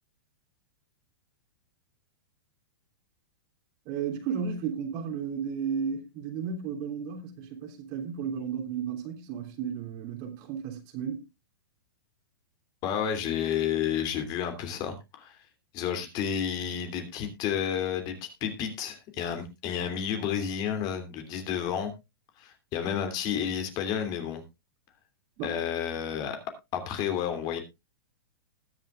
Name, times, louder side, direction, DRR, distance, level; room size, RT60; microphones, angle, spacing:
voice 1, 3.8-11.2 25.4-25.5, right 7 dB, 40° right, 3.1 m, -33 dB
voice 2, 12.8-15.4 15.7-21.9 22.4-24.4 25.4-26.4 26.7-27.6, left 8 dB, 35° left, 2.9 m, -31 dB
20.0 x 7.6 x 2.5 m
hypercardioid pair, 140°, 12 cm